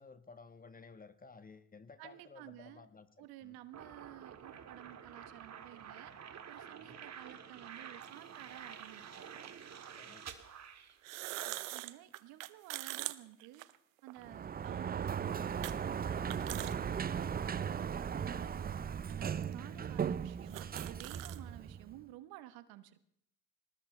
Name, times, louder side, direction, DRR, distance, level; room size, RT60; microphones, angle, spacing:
voice 1, 0.0-3.6 6.8-7.0 10.0-10.3 14.2-14.4 19.6-19.8, left 4 dB, 20° left, 11 dB, 1.3 m, -56 dB
voice 2, 2.0-2.9 3.2-6.1 6.5-9.3 11.2-13.7 14.0-18.7 19.1-23.0, right 15 dB, 70° right, 13 dB, 1.1 m, -53 dB
sound 1, 3.7-11.5, right 8 dB, 45° right, 1.9 m, -50 dB
sound 2, 8.0-8.1 9.3-9.5 10.9-14.2 14.6-14.7 15.6-15.8 16.1-16.8 17.2-17.3 18.2-18.3 19.1-19.2 19.4-19.5 20.0-20.1 20.3-21.4, right 18 dB, 85° right, 0.7 m, -43 dB
Sliding door, 14.2-22.0, right 7 dB, 25° right, 0.6 m, -37 dB
22.5 x 19.5 x 3.3 m, 0.72 s
hypercardioid pair, 65°, 38 cm